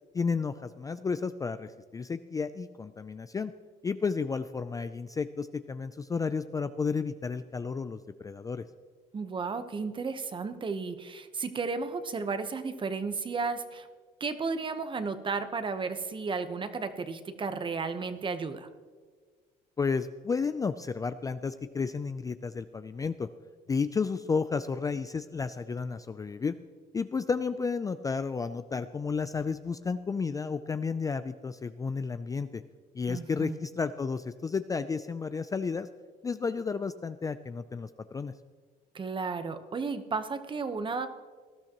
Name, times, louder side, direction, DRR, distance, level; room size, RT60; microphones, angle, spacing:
voice 1, 0.1-3.5 3.8-8.6 19.8-23.3 23.7-26.5 26.9-32.6 32.9-35.9 36.2-38.3, left 5 dB, 20° left, 11 dB, 0.4 m, -32 dB
voice 2, 9.1-13.9 14.2-18.7 33.1-33.6 38.9-41.1, right 4 dB, 30° right, 10 dB, 1.0 m, -33 dB
19.0 x 12.5 x 3.0 m, 1.5 s
cardioid pair, 110°, 17 cm